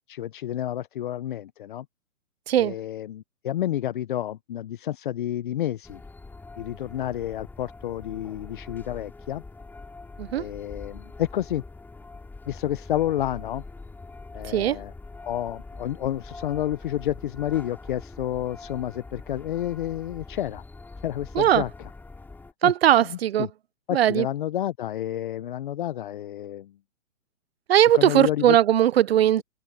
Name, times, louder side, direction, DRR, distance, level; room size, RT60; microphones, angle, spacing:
voice 1, 0.1-1.9 2.6-6.0 6.6-9.4 10.3-11.6 12.5-13.6 14.3-14.9 15.2-20.6 21.0-21.9 22.6-22.7 23.0-23.5 23.9-26.7 27.9-28.6, left 12 dB, 40° left, 0.6 m, -30 dB
sound 1, 5.8-22.5, left 3 dB, 5° left, 3.4 m, -43 dB
voice 2, 14.5-14.8 21.3-21.6 22.6-23.5 23.9-24.3 27.7-29.4, right 11 dB, 50° right, 0.6 m, -19 dB
hypercardioid pair, 150°, 41 cm